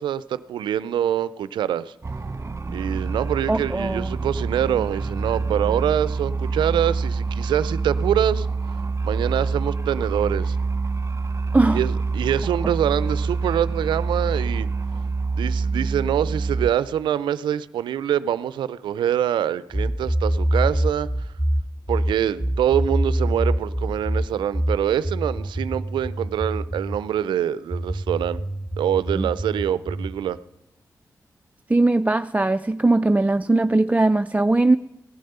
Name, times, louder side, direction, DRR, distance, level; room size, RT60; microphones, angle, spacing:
voice 1, 0.0-1.9 2.7-8.5 9.0-10.6 11.7-14.7 15.4-21.1 21.9-28.4 28.8-30.4, right 10 dB, 85° right, 0.4 m, -25 dB
sound 1, 2.0-16.7, right 4 dB, 35° right, 1.0 m, -26 dB
voice 2, 3.5-4.2 11.5-11.8 29.1-29.3 31.7-34.8, right 2 dB, 20° right, 0.4 m, -20 dB
sound 2, 19.7-27.0 27.7-30.2, right 1 dB, 5° left, 1.4 m, -25 dB
16.5 x 9.3 x 6.8 m
supercardioid pair, 40°, 8 cm